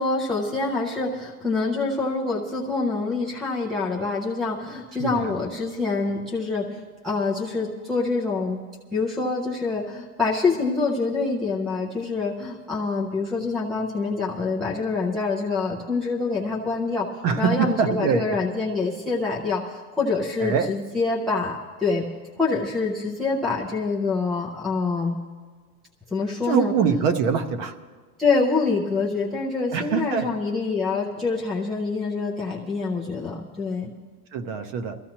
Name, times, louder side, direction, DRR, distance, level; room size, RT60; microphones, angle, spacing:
voice 1, 0.0-8.6 8.9-17.1 17.4-22.1 22.4-25.2 26.1-26.7 28.2-33.9, left 4 dB, ahead, 0 dB, 0.4 m, -26 dB
voice 2, 5.0-5.3 17.2-18.3 20.4-20.7 26.4-27.7 29.7-30.3 34.3-35.0, right 6 dB, 40° right, 10 dB, 0.9 m, -24 dB
22.5 x 14.5 x 2.9 m, 1.5 s
supercardioid pair, 160°, 45 cm